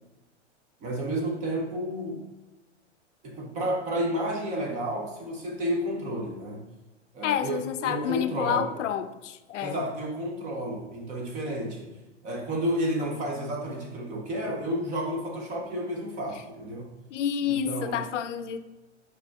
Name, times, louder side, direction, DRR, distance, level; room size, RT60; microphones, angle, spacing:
voice 1, 0.8-2.2 3.2-6.6 7.1-8.7 9.6-11.9 12.2-16.9 17.5-18.0, equal, 20° right, 0 dB, 0.5 m, -31 dB
voice 2, 7.2-9.8 17.1-18.6, left 9 dB, 75° left, 11 dB, 0.5 m, -29 dB
4.8 x 4.4 x 2.3 m, 1.1 s
hypercardioid pair, 120°, 36 cm